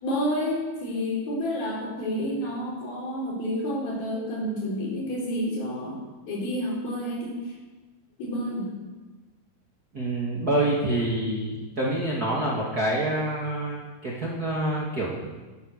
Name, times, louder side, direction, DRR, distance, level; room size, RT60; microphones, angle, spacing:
voice 1, 0.0-7.5 8.2-8.7, equal, 75° left, -3 dB, 5.9 m, -29 dB
voice 2, 9.9-15.1, right 1 dB, 30° right, -4 dB, 2.0 m, -27 dB
14.5 x 11.0 x 6.7 m, 1.2 s
omnidirectional pair, 4.3 m